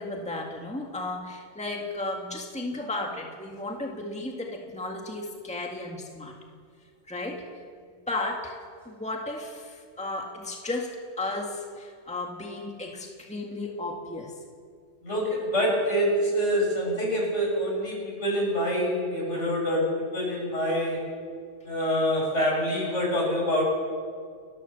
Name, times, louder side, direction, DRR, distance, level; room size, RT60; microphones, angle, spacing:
voice 1, 0.0-6.3 7.1-7.5 8.1-8.6 8.9-14.4, left 2 dB, 5° left, 1 dB, 1.9 m, -34 dB
voice 2, 15.0-21.1 21.6-23.6, equal, 70° left, -2 dB, 7.4 m, -26 dB
30.0 x 13.0 x 7.1 m, 2.1 s
omnidirectional pair, 1.3 m